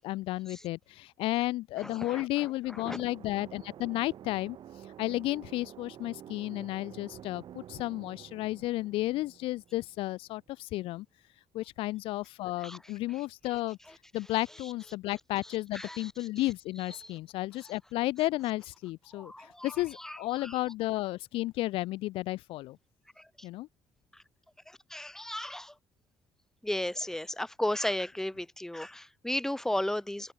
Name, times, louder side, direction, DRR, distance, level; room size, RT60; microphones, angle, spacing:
voice 1, 0.0-4.6 5.0-11.1 11.5-13.8 14.1-22.8 23.4-23.7, left 18 dB, 85° left, 1.3 m, -33 dB
voice 2, 1.8-2.5 2.8-3.0 12.6-12.8 15.7-16.1 17.0-17.1 19.1-20.6 23.2-23.5 24.1-24.2 24.7-25.7 26.6-30.3, left 1 dB, 5° left, 1.2 m, -35 dB
sound 1, 2.7-10.4, right 10 dB, 60° right, 1.7 m, -50 dB
open air
cardioid pair, 100°, 9 cm